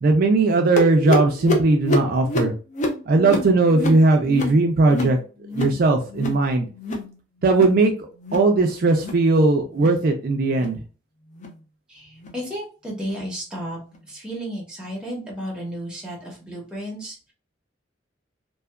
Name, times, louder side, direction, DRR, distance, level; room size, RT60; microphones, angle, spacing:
voice 1, 0.0-2.5 3.1-5.2 5.6-6.7 7.4-7.9 8.3-10.8, right 3 dB, 50° right, 3 dB, 0.3 m, -18 dB
sound 1, 0.8-5.8 6.1-6.5 6.7-7.1 7.4-7.8 8.2-8.5 8.9-9.3 9.7-10.0 10.5-10.8 11.3-11.6 12.2-12.4 13.1-13.2 13.9-14.0, left 2 dB, 40° left, 0.5 m, -28 dB
voice 2, 11.9-13.8 14.1-17.3, equal, 5° right, -3 dB, 0.9 m, -33 dB
2.7 x 2.3 x 2.2 m, 0.36 s
head